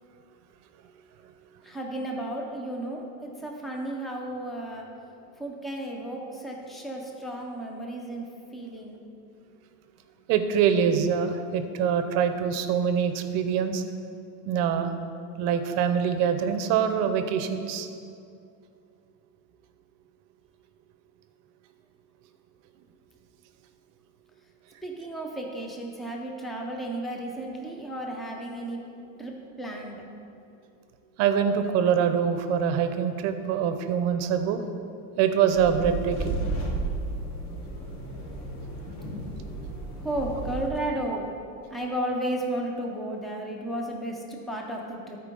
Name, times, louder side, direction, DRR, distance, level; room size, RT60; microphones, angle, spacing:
voice 1, 1.6-4.8 5.4-8.2 8.5-9.0 24.8-28.8 29.2-30.0 40.0-41.2 41.7-45.2, right 1 dB, ahead, 0 dB, 0.3 m, -33 dB
voice 2, 10.3-13.8 14.4-14.9 15.4-17.9 31.2-34.6 35.2-36.4, right 7 dB, 40° right, 8 dB, 0.6 m, -24 dB
sound 1, 35.5-40.7, right 2 dB, 45° left, 1.9 m, -33 dB
12.5 x 4.5 x 5.3 m, 2.5 s
cardioid pair, 165°, 39 cm